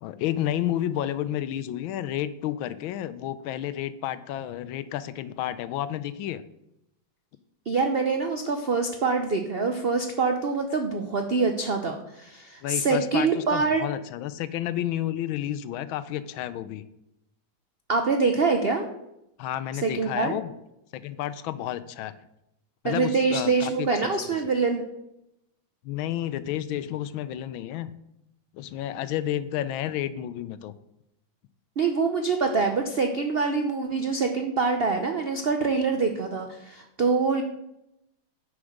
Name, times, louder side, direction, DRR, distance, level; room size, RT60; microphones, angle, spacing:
voice 1, 0.0-6.4 12.6-16.8 19.4-20.5 20.9-22.1 22.8-24.4 25.8-27.9 28.5-30.7, left 12 dB, 90° left, 15 dB, 1.4 m, -31 dB
voice 2, 7.7-13.8 17.9-18.8 19.8-20.3 22.8-24.9 31.8-37.4, right 4 dB, 80° right, 5 dB, 0.5 m, -25 dB
9.6 x 4.9 x 6.4 m, 0.85 s
omnidirectional pair, 2.1 m